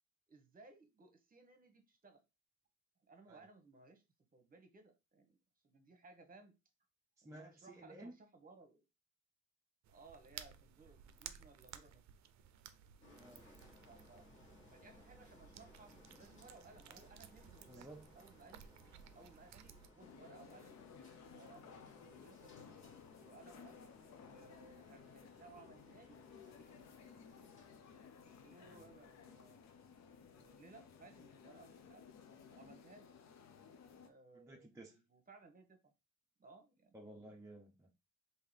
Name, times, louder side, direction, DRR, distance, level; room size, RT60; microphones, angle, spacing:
voice 1, 0.3-2.2 3.0-4.0 4.3-5.4 5.6-6.5 7.2-8.8 9.9-12.0 13.9-14.3 14.7-17.9 18.1-18.7 19.1-22.5 23.1-23.8 24.2-26.2 26.5-26.8 28.3-32.1 32.5-33.1 34.0-35.9 36.4-37.1, right 3 dB, 30° right, 1.0 m, -61 dB
voice 2, 7.2-8.2 13.1-13.4 17.7-18.1 28.7-28.9 34.3-35.0 36.9-37.9, right 1 dB, 10° right, 0.5 m, -55 dB
sound 1, 9.8-19.9, right 9 dB, 65° right, 0.5 m, -57 dB
sound 2, 13.0-32.7, left 1 dB, 40° left, 1.6 m, -65 dB
sound 3, 20.0-34.1, left 6 dB, 65° left, 0.7 m, -58 dB
3.7 x 2.8 x 3.2 m
cardioid pair, 90°, 30 cm